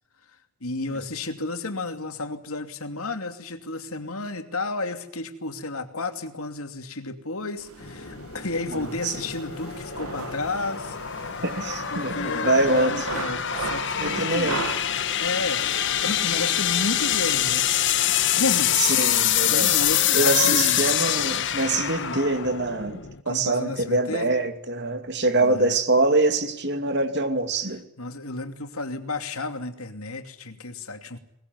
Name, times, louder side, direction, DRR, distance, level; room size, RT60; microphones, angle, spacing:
voice 1, 0.6-11.0 11.9-14.6 15.2-18.8 19.5-20.8 21.9-22.2 23.3-24.3 25.3-25.8 28.0-31.2, left 2 dB, 75° left, 7 dB, 2.7 m, -32 dB
sound 1, 7.6-20.0, right 4 dB, 75° right, 1.8 m, -39 dB
sound 2, 7.8-23.2, left 11 dB, 55° left, 1.4 m, -25 dB
voice 2, 11.4-13.0 14.0-14.6 19.0-19.8 20.1-23.0 23.3-27.8, right 2 dB, 50° right, 8 dB, 2.7 m, -24 dB
21.5 x 20.5 x 9.5 m, 0.80 s
head